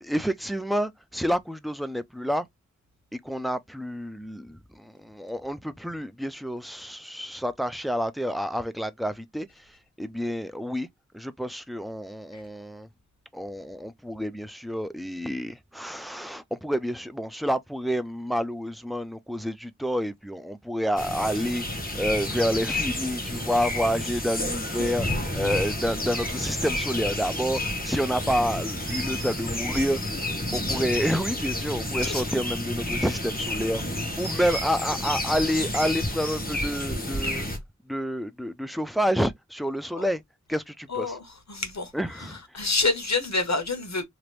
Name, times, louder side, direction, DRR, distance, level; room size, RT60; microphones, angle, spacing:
voice 1, 0.0-2.5 3.1-9.5 10.0-10.9 11.1-12.9 13.3-30.0 30.5-33.8 34.2-37.5 37.9-40.2 40.5-41.2 41.9-42.7, equal, ahead, 0.4 m, -29 dB
sound 1, 21.0-37.6, left 1 dB, 30° left, 1.1 m, -30 dB
voice 2, 30.5-30.8 32.0-32.2 37.2-37.3 40.0-40.1 40.9-41.2 41.5-41.9 42.2-42.3 42.5-44.0, left 3 dB, 60° left, 1.1 m, -28 dB
3.0 x 2.5 x 3.1 m
wide cardioid pair, 45°, 31 cm